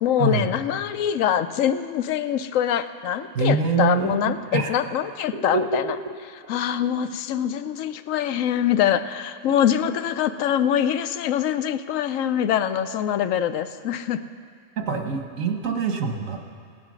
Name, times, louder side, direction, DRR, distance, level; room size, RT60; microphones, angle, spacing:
voice 1, 0.0-5.8 6.5-14.2, left 9 dB, 85° left, 12 dB, 1.0 m, -24 dB
voice 2, 3.3-4.8 5.5-5.8 14.8-16.4, right 4 dB, 85° right, 4 dB, 1.5 m, -24 dB
17.0 x 9.7 x 6.2 m, 2.3 s
omnidirectional pair, 1.3 m